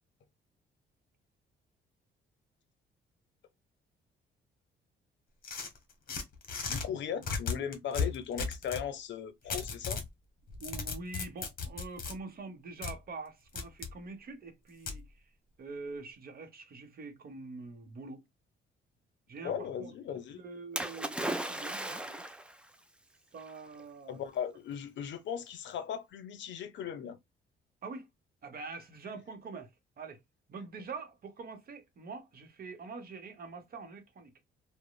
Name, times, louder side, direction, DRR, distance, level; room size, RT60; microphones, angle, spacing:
sound 1, 5.4-6.9 7.2-8.9 9.5-10.1 10.5-12.1 12.8-12.9 13.5-13.9 14.9-15.0, left 5 dB, 45° left, 0.9 m, -35 dB
voice 1, 6.7-10.0 19.4-20.4 24.1-27.2, left 8 dB, 65° left, 0.6 m, -38 dB
voice 2, 10.6-15.1 15.6-18.2 19.3-19.9 20.3-22.2 23.3-24.2 27.8-28.1 28.4-29.7 30.0-30.2 30.5-34.3, right 4 dB, 50° right, 0.9 m, -45 dB
Splash splatter, 20.8-22.6 23.5-23.6, right 1 dB, 5° right, 0.4 m, -36 dB
3.0 x 2.0 x 2.2 m
cardioid pair, 90°, 20 cm